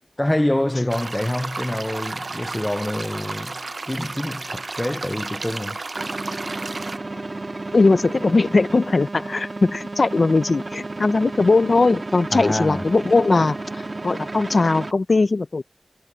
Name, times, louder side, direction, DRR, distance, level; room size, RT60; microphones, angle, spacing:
voice 1, 0.2-5.8 12.3-12.9, left 1 dB, 20° left, 0.5 m, -26 dB
sound 1, 0.9-7.0, right 3 dB, 80° right, 0.6 m, -32 dB
sound 2, 6.0-14.9, right 2 dB, 60° right, 1.6 m, -32 dB
voice 2, 7.7-15.6, left 3 dB, 85° left, 0.6 m, -19 dB
wide cardioid pair, 55°, 0 cm